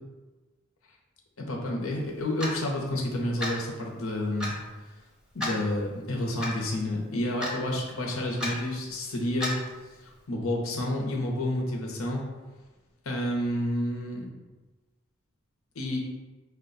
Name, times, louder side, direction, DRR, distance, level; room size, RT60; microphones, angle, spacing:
voice 1, 1.4-4.6 5.3-9.5 10.3-12.2 13.0-14.3 15.7-16.0, left 1 dB, 80° left, -1 dB, 0.9 m, -30 dB
Clock, 2.4-2.6 3.4-3.6 4.4-4.6 5.4-5.6 6.4-6.5 7.4-7.6 8.4-8.5 9.4-9.6, left 1 dB, 5° right, 0.7 m, -31 dB
5.1 x 2.3 x 3.9 m, 1.2 s
head